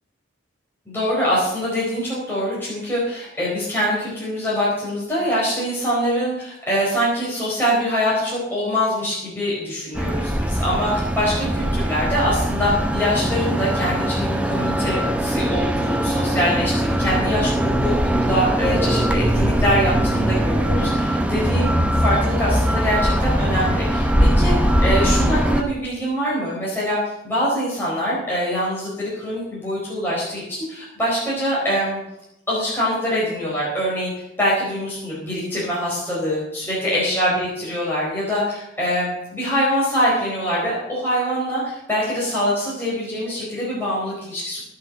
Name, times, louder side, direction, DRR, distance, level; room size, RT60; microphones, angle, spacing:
voice 1, 0.9-27.0 27.2-32.0 32.5-34.1 34.4-44.6, equal, 10° left, -7 dB, 4.5 m, -24 dB
sound 1, 9.9-25.6, equal, 5° right, 1.0 m, -21 dB
17.5 x 6.1 x 7.5 m, 0.86 s
head